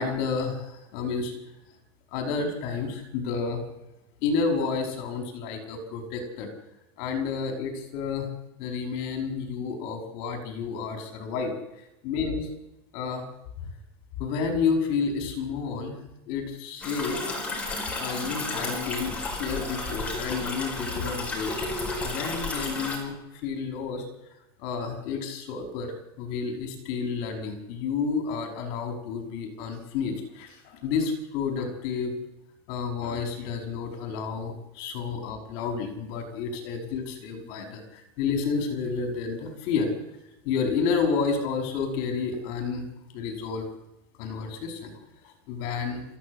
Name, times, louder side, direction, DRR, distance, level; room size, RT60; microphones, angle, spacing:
voice 1, 0.0-1.3 2.1-3.6 4.2-6.5 7.0-8.3 8.6-11.6 12.0-12.5 12.9-13.2 14.2-16.0 16.3-17.2 18.0-24.0 24.6-32.1 32.7-39.9 40.4-42.9 43.1-43.7 44.2-44.9 45.2-46.0, left 5 dB, 50° left, 4 dB, 5.2 m, -30 dB
sound 1, 16.8-23.0, left 2 dB, 10° left, 5.1 m, -32 dB
29.0 x 14.5 x 8.1 m, 0.92 s
supercardioid pair, 170°, 13 cm